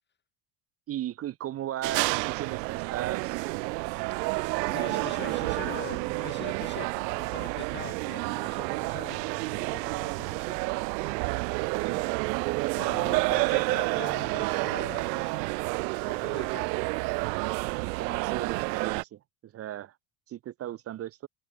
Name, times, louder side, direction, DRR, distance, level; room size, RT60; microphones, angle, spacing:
voice 1, 0.9-3.4 4.5-5.4 11.5-12.0 17.8-19.9 20.3-21.3, right 12 dB, 30° right, 0.7 m, -37 dB
sound 1, 1.8-19.0, right 27 dB, 90° right, 0.6 m, -30 dB
Bass guitar, 4.7-9.0, left 22 dB, 85° left, 4.8 m, -53 dB
voice 2, 4.7-10.7 12.8-15.5 16.1-16.8, left 10 dB, 25° left, 0.4 m, -44 dB
supercardioid pair, 130°, 48 cm